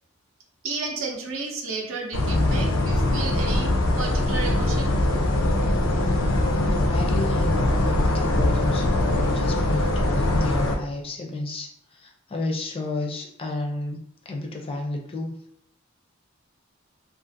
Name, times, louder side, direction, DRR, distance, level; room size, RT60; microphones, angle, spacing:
voice 1, 0.6-3.7 4.0-4.9, right 3 dB, 80° right, 1 dB, 0.6 m, -32 dB
sound 1, 2.1-10.8, left 1 dB, 85° left, 0.5 m, -22 dB
voice 2, 6.3-14.0 14.3-15.3, left 2 dB, 30° left, 2 dB, 0.4 m, -31 dB
2.5 x 2.4 x 2.5 m, 0.69 s
head